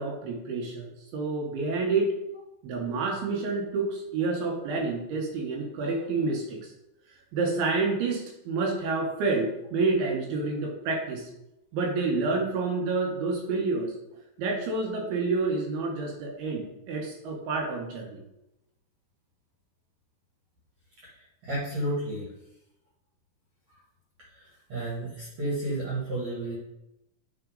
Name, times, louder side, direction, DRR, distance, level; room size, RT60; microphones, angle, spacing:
voice 1, 0.0-2.1 2.6-6.6 7.3-11.3 11.7-13.9 14.4-18.2, right 3 dB, 75° right, 1 dB, 2.8 m, -28 dB
voice 2, 21.0-22.3 24.3-26.6, right 1 dB, 50° right, -7 dB, 2.3 m, -32 dB
9.4 x 4.1 x 3.8 m, 0.90 s
omnidirectional pair, 4.8 m